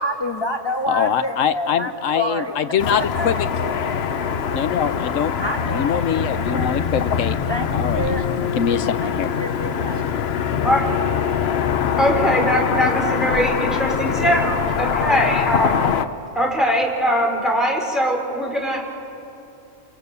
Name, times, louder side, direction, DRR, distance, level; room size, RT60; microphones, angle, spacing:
voice 1, 0.0-2.6 3.1-3.3 5.4-6.7 7.5-8.2 9.0-10.1, equal, 20° left, 3 dB, 1.4 m, -28 dB
voice 2, 0.9-3.4 4.5-5.3 5.7-7.4 7.7-8.1 8.6-9.3, left 8 dB, 75° left, 12 dB, 1.2 m, -23 dB
Car passing by / Traffic noise roadway noise, 2.8-16.1, left 7 dB, 55° left, 1.0 m, -23 dB
voice 3, 12.0-15.8 16.3-18.8, equal, ahead, -1 dB, 4.5 m, -21 dB
29.0 x 27.5 x 6.9 m, 2.9 s
omnidirectional pair, 1.3 m